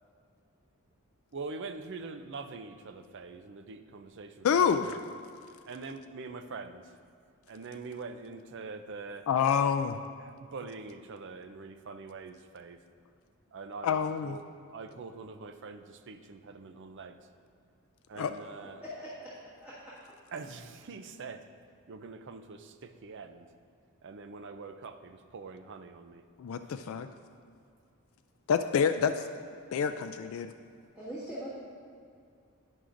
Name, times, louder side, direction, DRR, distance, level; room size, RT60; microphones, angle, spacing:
voice 1, 1.3-5.0 5.6-6.9 7.5-9.3 10.2-12.8 13.5-14.4 14.7-17.2 18.1-18.8 20.3-21.4 21.9-23.5 24.0-26.2, right 4 dB, 55° right, 9 dB, 0.5 m, -44 dB
voice 2, 4.4-5.0 9.3-10.0 13.8-14.3 18.2-18.3 26.4-27.1 28.5-29.2 29.7-30.5, left 7 dB, 65° left, 9 dB, 0.3 m, -27 dB
voice 3, 18.8-19.3 19.6-19.7 30.9-31.5, equal, 10° right, -11 dB, 1.8 m, -41 dB
10.5 x 9.8 x 2.6 m, 2.3 s
head